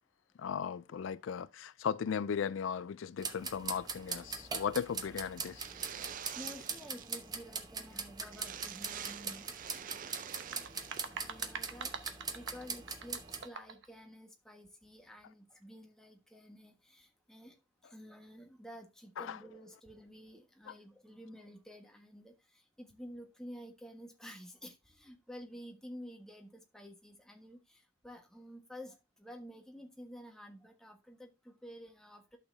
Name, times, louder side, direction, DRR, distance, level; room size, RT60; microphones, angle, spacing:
voice 1, 0.4-5.7 19.2-19.4 20.7-20.8, left 7 dB, 70° left, 0.4 m, -37 dB
sound 1, 3.2-13.5, right 5 dB, 20° right, 0.8 m, -42 dB
sound 2, 5.4-7.3 7.6-7.7 7.9-8.0 8.3-11.0, right 9 dB, 40° right, 0.4 m, -46 dB
voice 2, 6.3-9.5 11.0-11.9 12.3-17.5 17.8-32.4, equal, 5° left, 1.4 m, -51 dB
sound 3, 10.3-13.9, right 5 dB, 60° right, 1.0 m, -45 dB
11.5 x 6.5 x 2.7 m
head